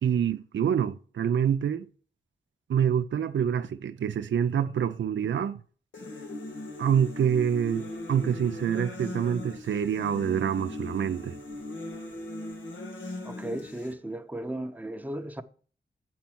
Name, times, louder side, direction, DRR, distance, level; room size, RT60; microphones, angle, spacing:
voice 1, 0.0-1.9 2.7-5.6 6.8-11.4, right 8 dB, 80° right, 0.6 m, -26 dB
sound 1, 5.9-13.9, left 1 dB, 85° left, 1.8 m, -39 dB
voice 2, 13.2-15.4, right 1 dB, 10° right, 0.8 m, -35 dB
8.2 x 4.6 x 6.1 m
cardioid pair, 60°, 19 cm